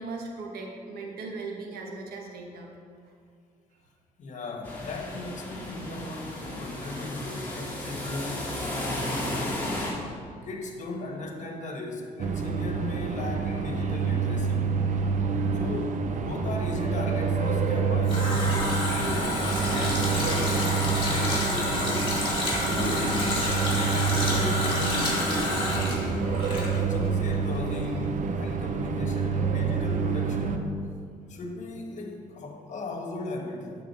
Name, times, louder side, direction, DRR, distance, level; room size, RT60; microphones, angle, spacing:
voice 1, 0.0-2.7, right 3 dB, 80° right, 0 dB, 1.2 m, -38 dB
voice 2, 4.2-9.8 10.4-14.8 15.5-18.7 19.0-22.1 22.6-23.2 23.9-26.0 26.5-30.7 31.3-33.8, left 2 dB, 50° left, 3 dB, 1.3 m, -37 dB
sound 1, 4.6-9.9, left 1 dB, 10° left, 2.4 m, -34 dB
Metro Madrid Room Tone Ventilacion Escaleras Distantes, 12.2-30.6, right 5 dB, 55° right, 0.7 m, -27 dB
Water tap faucet, 17.6-27.2 27.5-27.6, left 1 dB, 30° left, 2.3 m, -29 dB
9.1 x 3.8 x 6.8 m, 2.2 s
cardioid pair, 85°, 16 cm